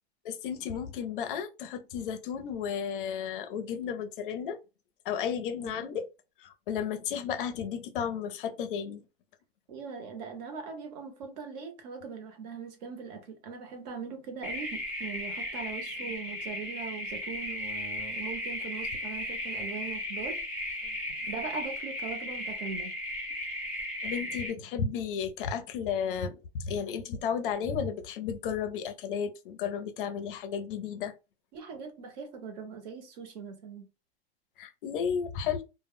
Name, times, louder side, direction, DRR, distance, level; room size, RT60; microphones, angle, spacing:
voice 1, 0.2-4.6 5.0-6.1 6.4-9.0 20.8-20.9 24.0-31.1 34.6-35.6, left 7 dB, 55° left, 0.5 m, -33 dB
voice 2, 5.2-6.0 9.7-20.4 21.3-22.9 31.5-33.8, right 5 dB, 40° right, 0.7 m, -41 dB
sound 1, 14.4-24.5, left 1 dB, 5° right, 0.3 m, -36 dB
2.1 x 2.0 x 3.5 m
supercardioid pair, 170°, 32 cm